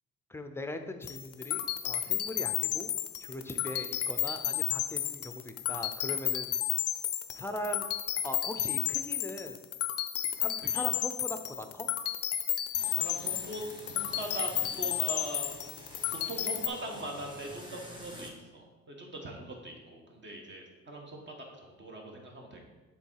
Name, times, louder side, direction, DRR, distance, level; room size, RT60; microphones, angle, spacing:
voice 1, 0.3-2.9 3.2-6.5 7.3-7.9 8.2-9.6 10.4-11.9, left 1 dB, 10° left, 7 dB, 0.6 m, -40 dB
sound 1, 1.0-16.7, left 11 dB, 55° left, 0.5 m, -32 dB
sound 2, 12.7-18.3, equal, 15° right, 1.4 m, -48 dB
voice 2, 12.9-14.5 14.8-15.5 16.3-22.7, right 1 dB, 40° right, 1 dB, 1.5 m, -41 dB
6.9 x 3.8 x 4.7 m, 1.2 s
cardioid pair, 90°, 30 cm